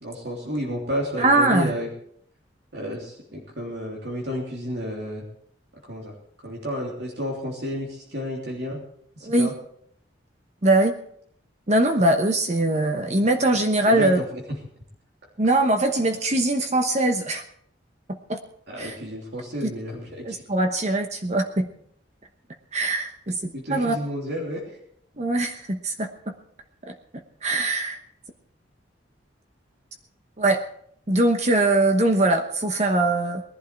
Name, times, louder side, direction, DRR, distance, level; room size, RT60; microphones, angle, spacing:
voice 1, 0.0-1.9 2.7-5.2 5.8-6.1 6.4-8.8 9.1-9.5 13.9-14.2 18.7-20.4 23.5-24.6, equal, 65° right, -2 dB, 3.3 m, -31 dB
voice 2, 1.2-1.7 9.2-9.5 10.6-10.9 11.7-14.2 15.4-17.4 18.1-18.4 18.8-19.0 19.6-19.7 20.2-21.7 22.7-23.9 25.2-26.3 26.9-27.0 27.4-28.0 30.4-30.6 31.1-33.4, right 2 dB, 40° right, 5 dB, 1.1 m, -22 dB
20.0 x 11.5 x 4.6 m, 0.66 s
head